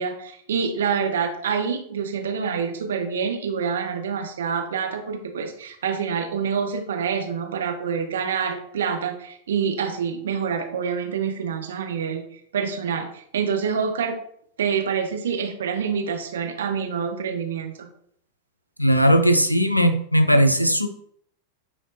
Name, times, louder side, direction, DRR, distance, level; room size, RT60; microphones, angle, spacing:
voice 1, 0.0-12.3 12.5-14.2 14.6-17.9, right 6 dB, 65° right, 4 dB, 0.6 m, -26 dB
voice 2, 18.8-20.9, equal, 90° left, 8 dB, 0.3 m, -18 dB
5.6 x 2.1 x 2.5 m, 0.65 s
figure-of-eight pair, 90°, 0 cm